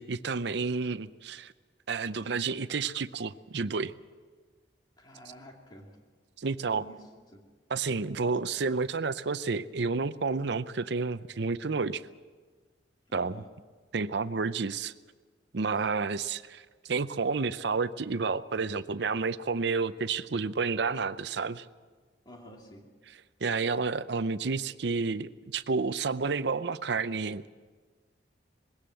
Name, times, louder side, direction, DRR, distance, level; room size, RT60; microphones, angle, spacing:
voice 1, 0.0-1.5 1.9-3.9 6.4-6.8 7.7-12.0 13.1-13.4 13.9-14.9 15.5-21.6 23.4-27.4, right 4 dB, 65° right, 14 dB, 0.6 m, -30 dB
voice 2, 5.0-6.0 6.6-7.0 7.3-7.4 13.1-13.5 15.8-15.9 22.2-22.9, equal, 25° left, 1 dB, 2.6 m, -50 dB
21.0 x 17.0 x 7.7 m, 1.5 s
head